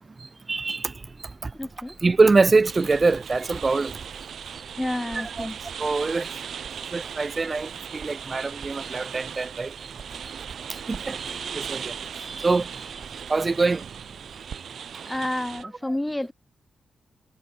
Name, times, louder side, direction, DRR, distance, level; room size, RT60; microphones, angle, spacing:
voice 1, 0.5-0.9 1.4-1.5 2.0-4.0 5.1-5.5 5.8-6.3 6.9-9.7 10.7-12.9 13.3-13.8, right 3 dB, 30° right, 0.7 m, -24 dB
sound 1, 0.9-14.5, right 1 dB, 10° right, 5.2 m, -55 dB
voice 2, 1.6-1.9 4.8-5.6 15.1-16.3, left 1 dB, 10° left, 0.4 m, -29 dB
sound 2, 2.6-15.6, right 8 dB, 70° right, 0.9 m, -38 dB
Writing, 2.9-13.3, right 6 dB, 55° right, 3.6 m, -49 dB
cardioid pair, 100°, 0 cm